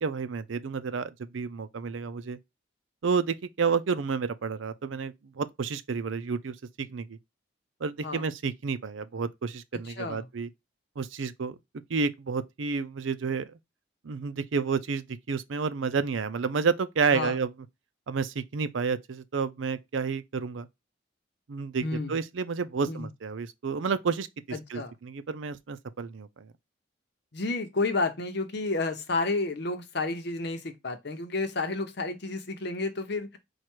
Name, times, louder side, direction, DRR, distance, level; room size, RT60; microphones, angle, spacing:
voice 1, 0.0-2.4 3.0-7.2 7.8-10.5 11.0-11.6 11.9-13.5 14.0-17.5 18.1-20.7 21.5-26.5, right 5 dB, 85° right, 0.5 m, -30 dB
voice 2, 9.9-10.2 17.1-17.4 21.8-22.1 22.9-23.1 24.5-24.9 27.3-33.4, left 3 dB, 60° left, 0.9 m, -31 dB
4.6 x 2.4 x 4.4 m
head